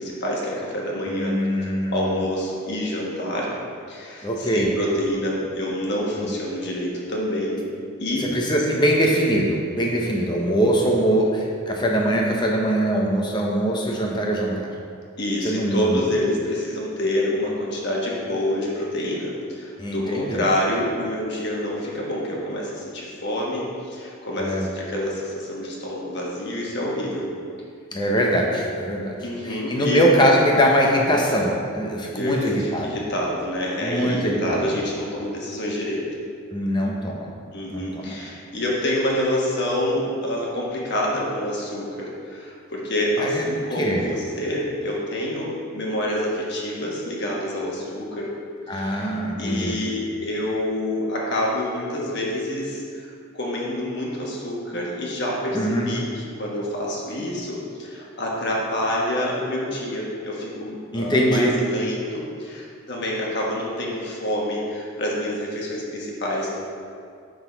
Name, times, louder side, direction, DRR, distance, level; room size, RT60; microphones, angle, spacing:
voice 1, 0.0-3.5 3.9-7.6 8.0-8.3 15.2-27.3 29.2-30.0 32.1-36.0 37.5-48.3 48.7-53.1 53.3-56.1 56.4-66.6, left 1 dB, 50° left, -3 dB, 1.3 m, -27 dB
voice 2, 1.1-2.2 4.2-4.7 6.2-6.3 8.2-14.7 15.4-16.0 19.8-20.5 24.4-24.6 27.9-29.2 29.4-33.0 33.8-34.8 36.5-37.3 37.7-38.2 43.2-43.4 43.8-44.1 48.7-49.8 55.5-55.9 60.9-61.6, equal, 20° left, -1 dB, 0.8 m, -22 dB
10.5 x 4.0 x 4.0 m, 2.3 s
head